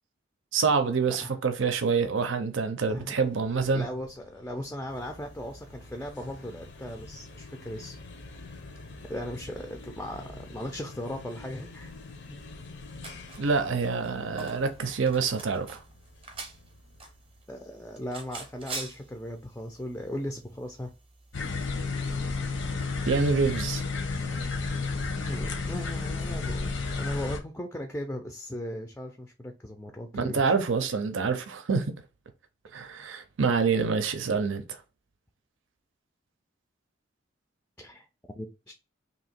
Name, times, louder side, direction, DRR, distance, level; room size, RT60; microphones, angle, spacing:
voice 1, 0.5-3.9 13.4-15.8 23.1-23.8 30.1-31.9 32.7-34.8, right 5 dB, 80° right, 0.6 m, -26 dB
sound 1, 3.0-17.4, left 3 dB, 60° left, 0.6 m, -48 dB
voice 2, 3.7-8.0 9.1-11.9 12.3-12.4 17.5-20.9 24.5-24.8 25.2-30.4 37.8-38.1 38.3-38.7, left 1 dB, 10° left, 0.4 m, -38 dB
sound 2, 4.9-21.7, right 3 dB, 30° right, 0.7 m, -48 dB
sound 3, 21.3-27.4, left 4 dB, 85° left, 1.0 m, -31 dB
2.8 x 2.8 x 4.2 m
head